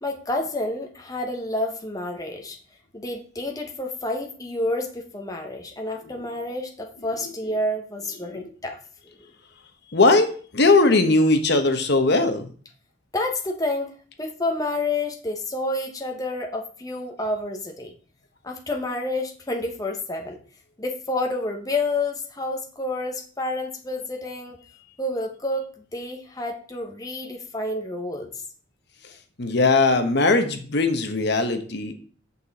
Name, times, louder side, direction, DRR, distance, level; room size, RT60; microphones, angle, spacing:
voice 1, 0.0-2.6 2.9-8.8 13.1-17.9 18.4-20.4 20.8-24.6 25.0-28.3, left 2 dB, 15° left, 2 dB, 1.0 m, -29 dB
voice 2, 9.9-12.5 29.4-31.9, left 3 dB, 55° left, 7 dB, 1.0 m, -20 dB
8.4 x 6.5 x 4.1 m, 0.43 s
head